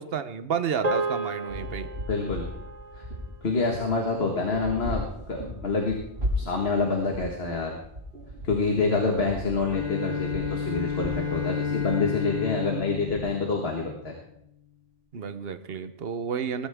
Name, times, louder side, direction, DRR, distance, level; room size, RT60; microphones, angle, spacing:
voice 1, 0.0-1.9 15.1-16.7, right 7 dB, 70° right, 10 dB, 1.1 m, -31 dB
sound 1, 0.8-5.4, right 2 dB, 40° right, 1.3 m, -35 dB
sound 2, 1.5-13.2, left 1 dB, 90° right, 4.0 m, -37 dB
voice 2, 2.1-2.4 2.9-3.0 3.4-5.9 6.4-7.8 8.4-14.2, left 4 dB, 75° left, 1 dB, 1.9 m, -27 dB
Bowed string instrument, 9.5-14.1, left 6 dB, 45° left, 4.1 m, -31 dB
21.5 x 13.5 x 3.6 m, 0.74 s
omnidirectional pair, 1.1 m